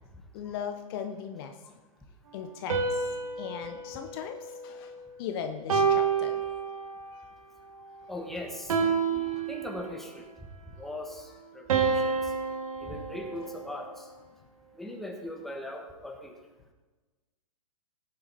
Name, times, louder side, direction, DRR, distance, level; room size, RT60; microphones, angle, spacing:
voice 1, 0.3-1.5 2.3-3.1 3.4-4.9 5.2-6.4 9.1-9.5, left 7 dB, 40° left, 6 dB, 1.0 m, -38 dB
sound 1, 2.7-5.1 5.7-7.2 8.7-10.2 11.7-14.0, right 5 dB, 65° right, 2.1 m, -29 dB
voice 2, 8.1-8.7 9.5-10.3 10.8-11.2 11.5-12.2 12.8-13.9 14.8-16.3, left 1 dB, ahead, 1 dB, 1.6 m, -39 dB
17.0 x 8.7 x 4.3 m, 1.2 s
hypercardioid pair, 125°, 19 cm